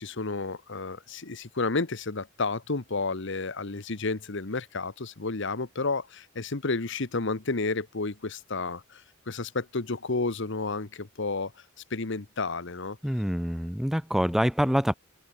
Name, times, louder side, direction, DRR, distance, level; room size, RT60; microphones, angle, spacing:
voice 1, 0.0-11.5 11.9-13.0, left 3 dB, 65° left, 1.2 m, -31 dB
voice 2, 13.0-14.9, equal, ahead, 0.5 m, -26 dB
head